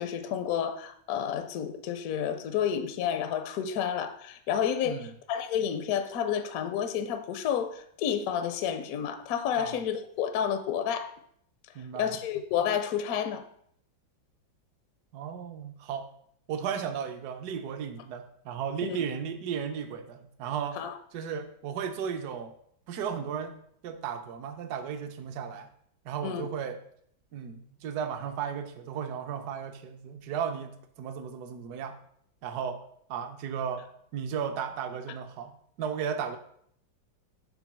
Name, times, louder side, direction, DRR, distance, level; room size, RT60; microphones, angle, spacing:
voice 1, 0.0-11.1 12.0-13.5 18.8-19.0 20.8-21.0 26.2-26.5, left 8 dB, 75° left, 0.8 m, -30 dB
voice 2, 11.7-12.2 15.1-16.1 16.5-20.8 21.1-22.5 22.9-23.5 23.8-25.7 26.0-26.8 27.3-32.0 32.4-32.8 33.1-36.4, right 7 dB, 65° right, 1.0 m, -35 dB
6.1 x 3.7 x 5.9 m
omnidirectional pair, 2.1 m